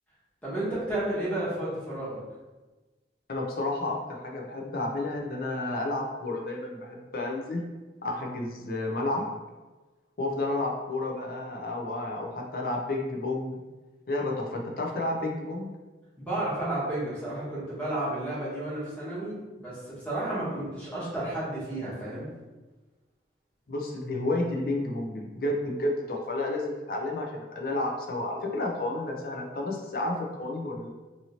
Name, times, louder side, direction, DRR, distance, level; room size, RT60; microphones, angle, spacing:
voice 1, 0.4-2.2 16.2-22.3, right 1 dB, 5° left, -9 dB, 1.1 m, -32 dB
voice 2, 3.3-7.6 8.0-9.2 10.2-13.5 14.1-15.7 23.7-30.9, left 2 dB, 55° left, 0 dB, 0.5 m, -31 dB
2.7 x 2.7 x 2.8 m, 1.2 s
head